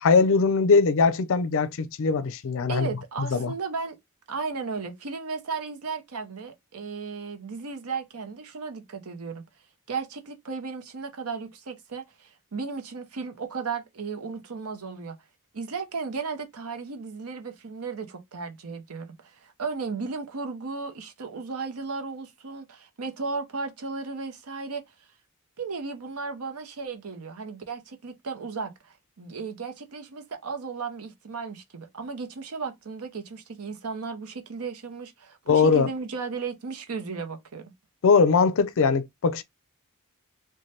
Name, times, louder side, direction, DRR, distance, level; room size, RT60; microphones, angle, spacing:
voice 1, 0.0-2.9 3.3-3.5 35.5-35.9 38.0-39.4, left 4 dB, 65° left, 0.4 m, -21 dB
voice 2, 2.7-4.0 4.3-9.4 9.9-15.2 15.5-24.8 25.6-37.7, right 4 dB, 75° right, 0.7 m, -35 dB
3.1 x 2.2 x 2.7 m
head